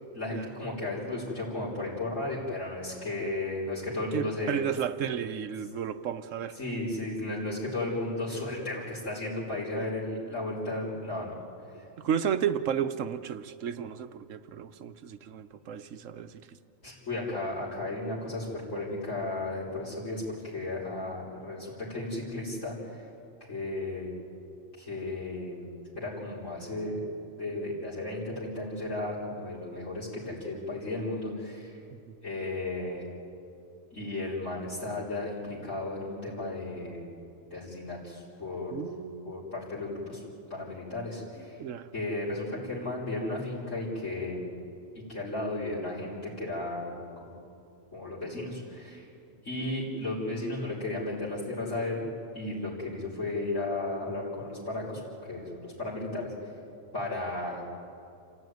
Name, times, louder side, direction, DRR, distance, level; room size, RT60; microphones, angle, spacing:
voice 1, 0.1-4.6 6.5-11.3 16.8-23.0 23.5-24.1 24.8-27.0 27.3-31.8 32.2-33.0 33.9-37.1 37.5-38.8 39.2-40.2 40.5-41.6 41.9-44.5 45.1-47.0 47.2-47.4 47.9-49.1 49.4-52.1 52.3-56.3 56.9-57.6, left 2 dB, 60° left, -6 dB, 4.7 m, -34 dB
voice 2, 4.1-6.5 9.8-9.9 12.0-16.3 32.1-32.2 38.7-39.3 41.6-41.9, right 8 dB, 65° right, 11 dB, 1.1 m, -32 dB
27.5 x 15.5 x 9.4 m, 2.6 s
omnidirectional pair, 1.4 m